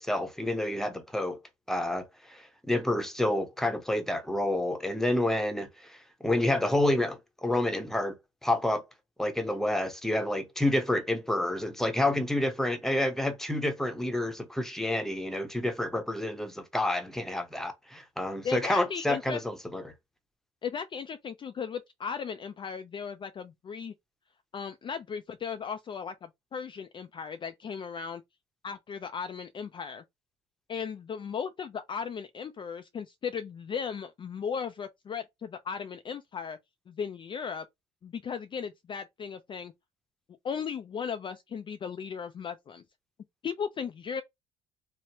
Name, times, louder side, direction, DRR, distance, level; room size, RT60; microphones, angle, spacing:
voice 1, 0.0-1.4 1.7-8.2 8.4-8.8 9.2-19.9, left 1 dB, 5° left, 0.9 m, -29 dB
voice 2, 18.4-19.4 20.6-23.9 24.5-28.2 28.6-30.0 30.7-36.6 36.9-37.6 38.0-39.7 40.4-42.8 43.4-44.2, left 6 dB, 30° left, 0.4 m, -36 dB
3.1 x 2.0 x 2.8 m
hypercardioid pair, 70°, 15 cm